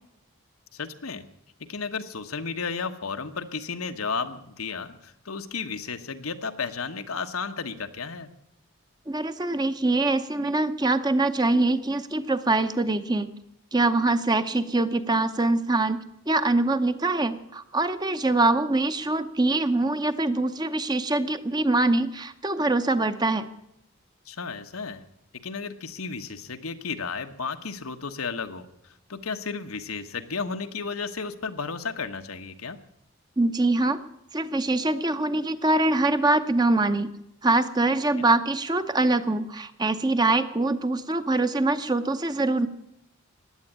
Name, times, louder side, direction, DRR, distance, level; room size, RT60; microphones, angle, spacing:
voice 1, 0.7-1.3 1.7-8.3 24.3-25.0 25.4-28.7 29.1-32.8 38.2-38.3, left 5 dB, 90° left, 7 dB, 1.2 m, -33 dB
voice 2, 9.1-13.3 13.7-23.5 33.4-34.0 34.3-37.1 37.4-42.7, right 2 dB, 20° right, 10 dB, 0.7 m, -24 dB
16.0 x 10.0 x 8.7 m, 0.80 s
head